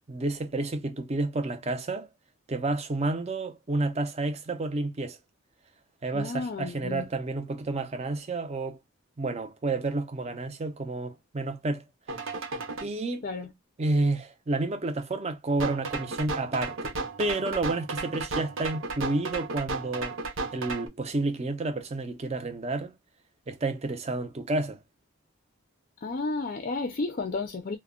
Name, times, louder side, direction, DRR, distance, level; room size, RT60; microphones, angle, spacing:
voice 1, 0.1-2.1 2.5-5.2 6.0-8.8 9.2-11.8 12.8-13.3 13.8-20.2 20.5-22.9 23.5-24.8, right 2 dB, 30° right, 0.5 m, -30 dB
voice 2, 6.1-7.1 13.2-13.5 26.0-27.8, left 3 dB, 40° left, 0.4 m, -32 dB
sound 1, 12.1-12.8 15.6-20.9, right 3 dB, 65° right, 0.7 m, -34 dB
2.3 x 2.0 x 3.6 m
head